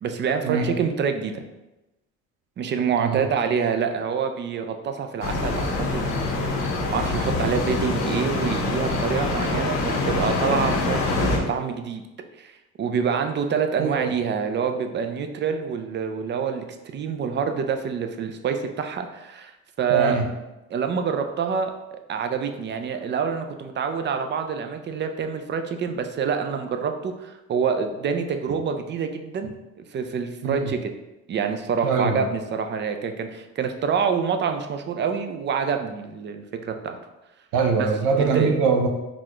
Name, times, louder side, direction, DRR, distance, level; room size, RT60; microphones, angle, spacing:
voice 1, 0.0-1.4 2.6-9.8 10.1-12.0 12.4-12.5 12.8-16.6 16.9-19.5 19.8-20.2 20.7-30.9 31.3-37.0 38.2-38.6, right 6 dB, 35° right, 6 dB, 0.4 m, -26 dB
sound 1, 5.2-11.4, left 2 dB, 65° left, 0.9 m, -25 dB
voice 2, 13.8-14.1 19.9-20.3 30.4-30.7 31.8-32.2 37.5-38.9, right 5 dB, 80° right, 4 dB, 0.7 m, -23 dB
4.0 x 2.2 x 3.0 m, 1.0 s
cardioid pair, 90°, 30 cm